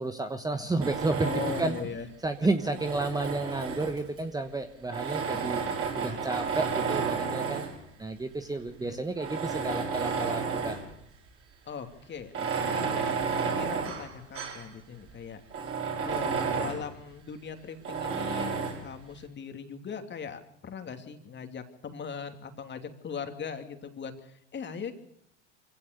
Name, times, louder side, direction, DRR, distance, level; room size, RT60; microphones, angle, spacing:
voice 1, 0.0-1.8 2.2-5.6 5.9-7.7 8.0-10.8, right 2 dB, 10° right, 8 dB, 1.2 m, -31 dB
Tools, 0.8-1.9 2.6-4.2 4.9-7.8 8.5-8.6 9.1-10.9 11.3-11.4 12.2-14.7 15.1-15.2 15.5-16.9 17.8-18.9, right 5 dB, 35° right, 5.8 m, -31 dB
voice 2, 1.2-2.1 8.8-9.0 11.6-15.4 16.0-24.9, left 6 dB, 30° left, 6 dB, 2.9 m, -40 dB
24.5 x 16.5 x 6.9 m, 0.73 s
hypercardioid pair, 90°, 36 cm